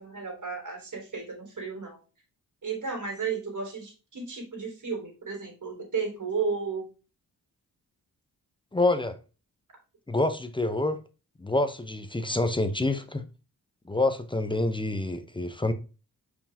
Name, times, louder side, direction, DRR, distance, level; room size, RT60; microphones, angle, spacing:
voice 1, 0.0-2.0 2.6-6.9, right 5 dB, 55° right, 3.4 m, -33 dB
voice 2, 8.7-9.2 10.1-11.0 11.4-13.2 13.9-15.7, left 2 dB, 15° left, 0.7 m, -27 dB
5.5 x 4.9 x 3.4 m
wide cardioid pair, 90°, 35 cm